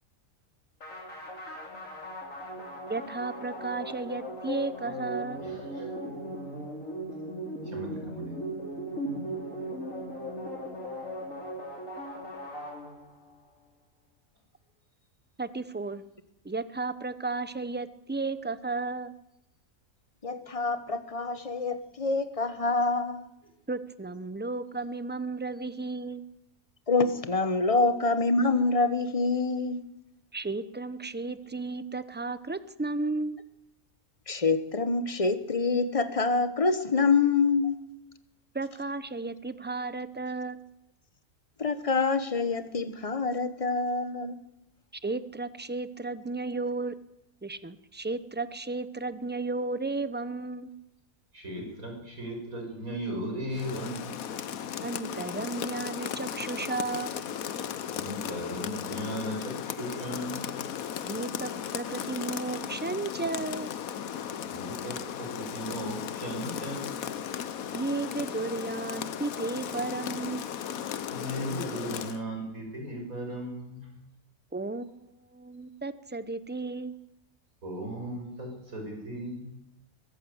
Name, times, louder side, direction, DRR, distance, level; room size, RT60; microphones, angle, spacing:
sound 1, 0.8-13.4, right 1 dB, 65° left, 4.3 m, -38 dB
voice 1, 2.9-5.5 15.4-16.0 16.4-19.1 23.7-26.2 30.3-33.4 38.5-40.6 45.0-47.0 47.4-50.7 54.8-57.1 61.1-63.7 67.7-70.4 74.5-77.0, right 3 dB, 10° right, 0.6 m, -34 dB
voice 2, 5.4-5.9 7.6-8.6 51.3-54.2 57.9-60.6 64.5-67.0 71.1-74.0 77.6-79.5, equal, 90° right, 6.2 m, -37 dB
voice 3, 20.2-23.3 26.9-29.8 34.3-37.8 41.6-44.3, left 4 dB, 25° left, 1.2 m, -26 dB
Rain, 53.5-72.2, left 9 dB, 85° left, 1.4 m, -36 dB
22.5 x 14.5 x 8.0 m
omnidirectional pair, 1.4 m